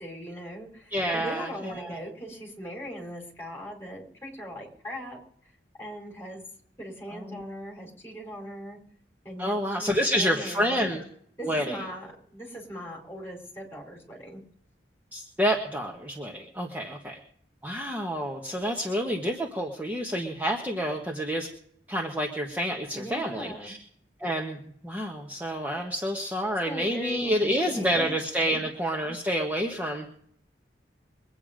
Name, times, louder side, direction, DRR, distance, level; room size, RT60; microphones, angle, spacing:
voice 1, 0.0-5.2 5.8-6.4 6.8-8.8 9.2-11.0 11.4-14.4 22.9-23.7 26.6-28.1 28.5-28.6, equal, 15° left, 0 dB, 4.6 m, -39 dB
voice 2, 0.9-2.0 7.1-7.4 9.4-11.0 11.4-11.8 15.1-17.2 17.6-21.5 21.9-23.8 24.2-30.1, equal, 10° right, -1 dB, 1.4 m, -28 dB
23.0 x 9.1 x 5.1 m, 0.65 s
head